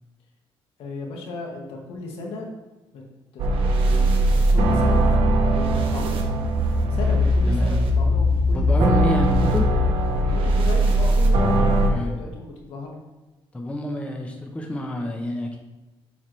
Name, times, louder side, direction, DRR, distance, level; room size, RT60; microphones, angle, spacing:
voice 1, 0.8-2.5 2.9-3.0 3.3-5.1 5.5-6.1 6.9-9.2 10.3-13.0, left 2 dB, 80° left, 0 dB, 1.7 m, -35 dB
sound 1, 3.4-11.9, right 1 dB, 75° right, 1.0 m, -19 dB
voice 2, 8.5-9.7 11.9-12.2 13.5-15.6, left 1 dB, 15° left, 1 dB, 0.9 m, -28 dB
7.5 x 5.8 x 3.3 m, 1.1 s
cardioid pair, 130°, 9 cm